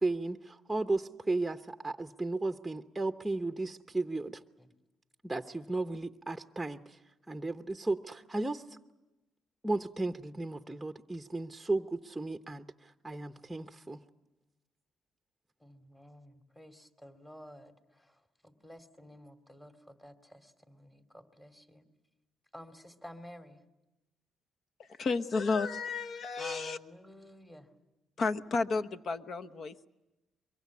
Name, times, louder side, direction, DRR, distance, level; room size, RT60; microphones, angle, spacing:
voice 1, 0.0-4.4 5.2-7.0 7.3-8.8 9.6-14.0, right 2 dB, 10° right, 7 dB, 0.8 m, -34 dB
voice 2, 15.6-18.2 18.4-21.8 22.5-23.6 26.4-27.7, equal, 15° left, 7 dB, 2.6 m, -52 dB
voice 3, 24.8-26.8 28.2-29.9, left 4 dB, 50° left, 10 dB, 1.1 m, -32 dB
23.5 x 23.5 x 8.4 m, 1.0 s
cardioid pair, 90°, 0 cm